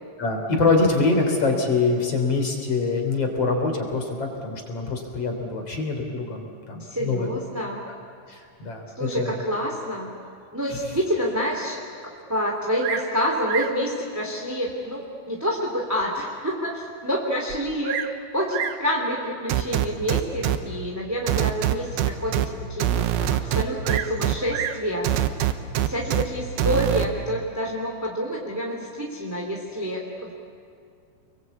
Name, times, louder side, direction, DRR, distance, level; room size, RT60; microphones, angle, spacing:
voice 1, 0.2-7.3 8.3-9.3, left 3 dB, 40° left, 3 dB, 4.2 m, -24 dB
voice 2, 6.8-7.8 8.9-10.1 10.5-11.8 12.3-18.0 18.3-25.1 25.8-30.3, equal, 5° right, -2 dB, 2.5 m, -28 dB
Bird vocalization bird call bird song, 12.8-13.2 13.4-13.8 14.7-14.8 15.4-15.5 16.0-16.1 16.3-16.4 17.5-18.2 18.5-18.9 19.9-20.2 23.8-24.9 25.9-26.4, right 9 dB, 70° right, 1.9 m, -31 dB
sound 1, 19.5-20.6 21.3-22.5 22.8-24.3 25.0-26.2 26.6-27.1, right 12 dB, 90° right, 2.9 m, -22 dB
29.5 x 22.5 x 8.4 m, 2.4 s
omnidirectional pair, 4.3 m